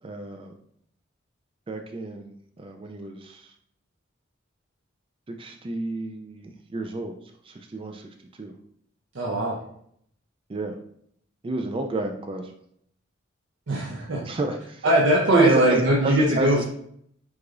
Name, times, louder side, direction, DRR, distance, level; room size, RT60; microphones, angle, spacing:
voice 1, 0.0-0.6 1.7-3.5 5.3-7.1 7.4-8.1 8.4-8.5 10.5-10.8 11.4-12.5 14.2-14.9 15.3-16.6, right 3 dB, 25° right, 5 dB, 0.4 m, -29 dB
voice 2, 9.1-9.6 13.7-14.2 14.8-16.6, right 1 dB, 65° right, -3 dB, 0.7 m, -20 dB
4.7 x 3.7 x 2.5 m, 0.67 s
head